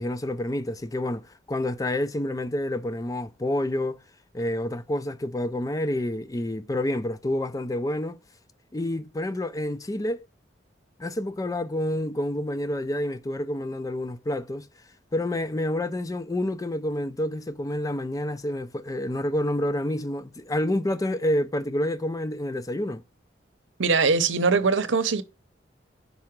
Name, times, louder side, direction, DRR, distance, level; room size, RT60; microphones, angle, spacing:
voice 1, 0.0-4.0 4.3-8.2 8.7-10.3 11.0-14.7 15.1-23.0, left 1 dB, 20° left, 0.4 m, -28 dB
voice 2, 23.8-25.2, right 4 dB, 85° right, 0.7 m, -21 dB
5.4 x 4.8 x 4.5 m
head